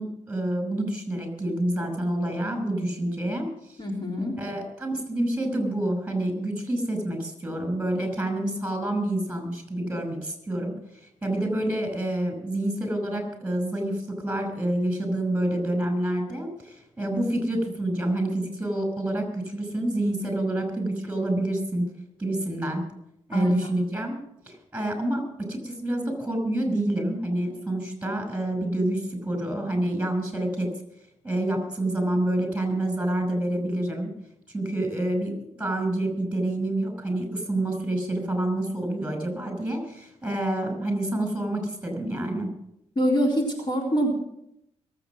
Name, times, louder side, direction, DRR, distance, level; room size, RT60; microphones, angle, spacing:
voice 1, 0.0-3.8 4.4-10.7 11.2-21.9 22.2-22.8 23.3-24.2 24.5-30.7 31.2-34.1 34.5-42.5, right 1 dB, 10° right, 4 dB, 5.7 m, -28 dB
voice 2, 3.8-4.4 23.3-23.5 43.0-44.1, equal, 40° left, 0 dB, 3.7 m, -24 dB
22.5 x 8.2 x 6.0 m, 0.79 s
cardioid pair, 85°, 12 cm